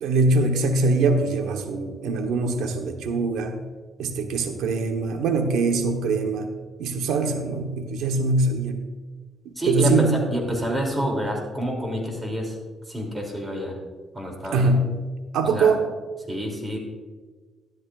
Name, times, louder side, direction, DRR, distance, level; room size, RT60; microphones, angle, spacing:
voice 1, 0.0-3.6 4.0-6.5 6.8-8.8 9.4-10.1 14.5-15.0 15.3-15.8, right 3 dB, 85° right, 5 dB, 1.1 m, -23 dB
voice 2, 9.6-12.6 12.9-13.8 14.1-14.7 15.4-15.8 16.3-16.8, equal, 20° right, 0 dB, 2.8 m, -27 dB
13.0 x 12.0 x 2.5 m, 1.4 s
cardioid pair, 90°, 0 cm